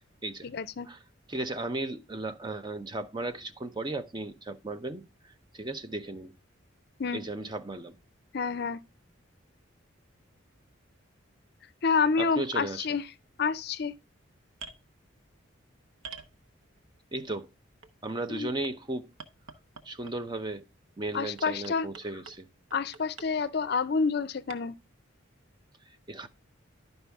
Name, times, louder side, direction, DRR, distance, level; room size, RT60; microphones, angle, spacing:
voice 1, 0.4-0.9 7.0-7.2 8.3-8.8 11.8-13.0 13.4-14.0 18.3-18.5 21.1-21.9 22.7-24.7, left 5 dB, 50° left, 0.5 m, -28 dB
voice 2, 1.3-5.0 5.5-6.3 7.1-8.0 12.2-12.9 17.1-17.5 18.0-19.1 19.8-20.6 21.0-22.5 26.1-26.3, right 2 dB, 20° right, 0.7 m, -35 dB
sound 1, 14.5-14.8 16.0-16.8 17.8-18.7 19.2-20.3 21.4-22.4 22.7-23.3 24.5-24.6, right 5 dB, 85° right, 1.0 m, -45 dB
11.5 x 5.3 x 3.5 m
head